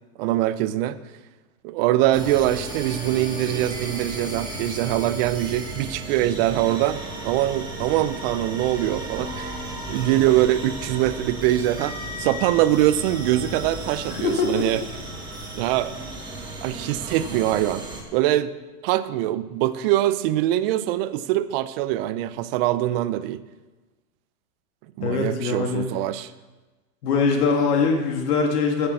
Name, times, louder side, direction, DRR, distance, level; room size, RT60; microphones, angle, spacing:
voice 1, 0.2-1.0 1.6-9.5 9.9-14.8 15.5-15.9 16.6-18.5 18.8-23.4 25.0-26.3, right 14 dB, 40° right, 14 dB, 0.6 m, -23 dB
sound 1, 2.1-18.0, right 2 dB, 10° right, 2.1 m, -34 dB
voice 2, 14.1-14.7 25.0-25.9 27.0-28.9, left 4 dB, 70° left, 1 dB, 2.2 m, -22 dB
14.5 x 6.8 x 5.6 m, 1.2 s
supercardioid pair, 140°, 48 cm